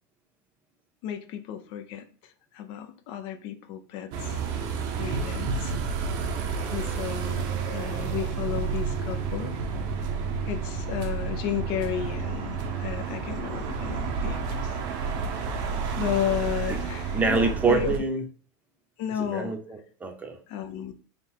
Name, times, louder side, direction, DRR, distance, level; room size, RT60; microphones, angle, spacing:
voice 1, 1.0-2.1 2.5-4.4 5.0-5.7 6.7-9.6 10.5-14.8 15.3-15.4 16.0-17.9 19.0-19.6 20.5-20.9, left 10 dB, 55° left, 0.6 m, -33 dB
sound 1, 4.1-18.0, right 5 dB, 55° right, 0.8 m, -30 dB
voice 2, 17.1-18.3 19.2-20.4, right 4 dB, 15° right, 0.8 m, -26 dB
3.7 x 2.4 x 4.4 m
supercardioid pair, 125°, 10 cm